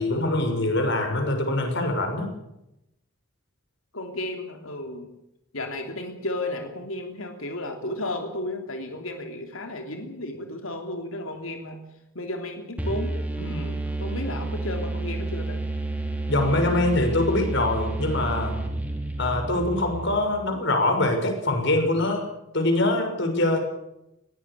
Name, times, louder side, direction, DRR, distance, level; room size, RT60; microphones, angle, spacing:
voice 1, 0.0-2.3 16.3-18.6 19.2-22.3 22.5-23.6, left 2 dB, 60° left, 4 dB, 6.3 m, -24 dB
voice 2, 3.9-5.1 5.5-11.8 12.1-15.6, left 1 dB, 85° left, 4 dB, 3.3 m, -33 dB
sound 1, 12.8-20.5, right 2 dB, 5° right, 4.2 m, -30 dB
21.5 x 17.5 x 8.6 m, 0.85 s
head